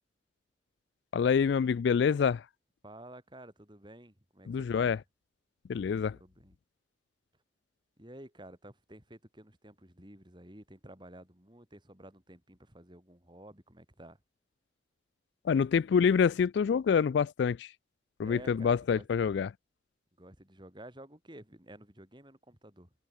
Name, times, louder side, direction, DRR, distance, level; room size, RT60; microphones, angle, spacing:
voice 1, 1.1-2.4 4.5-5.0 5.7-6.2 15.5-17.7 18.2-19.5, left 6 dB, 65° left, 0.3 m, -26 dB
voice 2, 2.8-5.0 6.1-6.6 8.0-14.2 18.2-19.1 20.2-22.9, right 1 dB, 25° right, 3.9 m, -52 dB
head